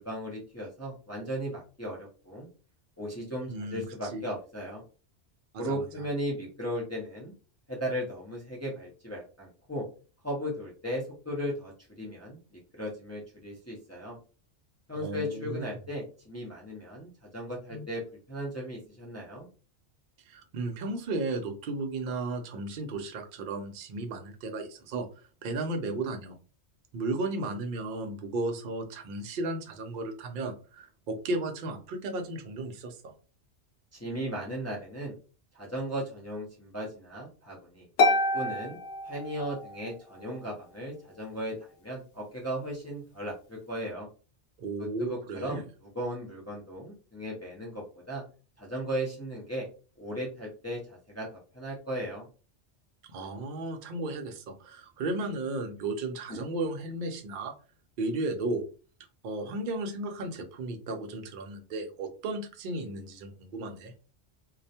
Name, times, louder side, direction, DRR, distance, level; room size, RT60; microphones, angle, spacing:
voice 1, 0.0-2.5 3.0-4.8 5.6-7.3 7.7-9.9 10.2-14.2 14.9-18.0 18.3-19.5 33.9-35.1 35.5-37.9 38.3-38.8 39.0-41.6 41.8-44.1 44.8-48.2 48.6-49.7 50.0-52.3 56.3-56.4, equal, 20° left, -3 dB, 0.4 m, -36 dB
voice 2, 3.5-3.8 4.1-4.2 5.5-5.8 15.0-15.6 17.7-17.8 20.3-25.1 25.4-26.4 26.9-33.1 44.6-45.6 53.1-57.5 58.0-58.6 59.2-63.9, right 2 dB, 60° right, 5 dB, 0.6 m, -34 dB
Harp, 38.0-39.9, left 2 dB, 65° left, 0.7 m, -27 dB
2.3 x 2.1 x 2.7 m, 0.36 s
omnidirectional pair, 1.1 m